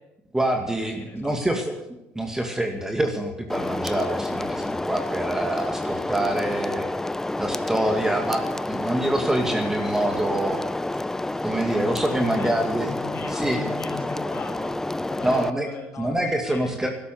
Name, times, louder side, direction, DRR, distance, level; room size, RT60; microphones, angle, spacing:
voice 1, 0.3-1.7 2.2-6.9 7.4-10.6 11.4-13.7 15.2-15.7 16.0-16.9, right 1 dB, 10° right, 4 dB, 2.2 m, -26 dB
voice 2, 1.0-1.5 12.1-12.6 12.9-14.8 15.1-16.9, left 4 dB, 45° left, 2 dB, 5.9 m, -37 dB
sound 1, 3.5-15.5, left 2 dB, 10° left, 0.5 m, -29 dB
13.0 x 12.0 x 9.4 m, 0.92 s
supercardioid pair, 85°, 5 cm